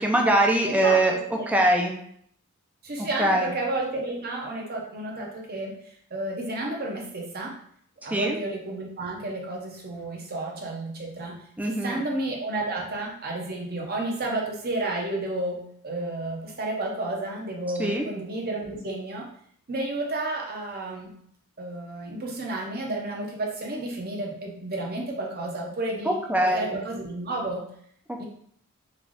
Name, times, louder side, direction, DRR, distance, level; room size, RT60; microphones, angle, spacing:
voice 1, 0.0-1.1 1.5-1.9 3.0-3.5 8.1-8.4 11.6-12.0 17.8-18.0 26.1-26.8 28.1-28.2, right 1 dB, 5° right, 1 dB, 0.4 m, -23 dB
voice 2, 0.6-1.0 1.3-1.5 2.8-5.8 6.1-7.5 8.0-11.4 11.6-19.3 19.7-21.1 21.6-27.6 28.2-28.3, right 2 dB, 45° right, -1 dB, 0.8 m, -31 dB
3.3 x 2.4 x 3.8 m, 0.66 s
head